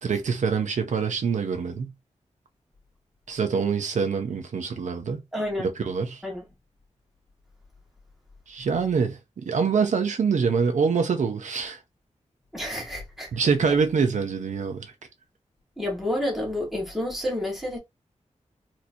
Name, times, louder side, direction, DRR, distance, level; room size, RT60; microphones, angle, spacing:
voice 1, 0.0-1.9 3.3-5.2 5.6-6.2 8.5-11.8 13.3-14.9, right 5 dB, 85° right, 0.7 m, -25 dB
voice 2, 5.3-5.7 6.2-6.4 12.5-13.3 15.8-17.8, left 1 dB, ahead, 1.6 m, -29 dB
4.3 x 3.0 x 2.7 m
wide cardioid pair, 150°, 12 cm